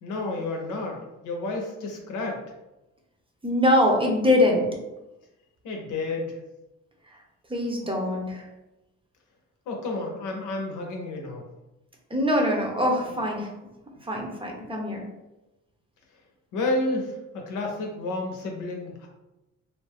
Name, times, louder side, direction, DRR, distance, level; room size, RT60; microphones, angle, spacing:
voice 1, 0.0-2.4 5.6-6.4 9.7-11.4 16.5-19.1, left 2 dB, 85° left, 1 dB, 0.7 m, -30 dB
voice 2, 3.4-4.7 7.5-8.5 12.1-13.5 14.0-15.0, left 1 dB, 20° right, 0 dB, 0.7 m, -23 dB
2.6 x 2.1 x 3.4 m, 0.97 s
cardioid pair, 90°, 30 cm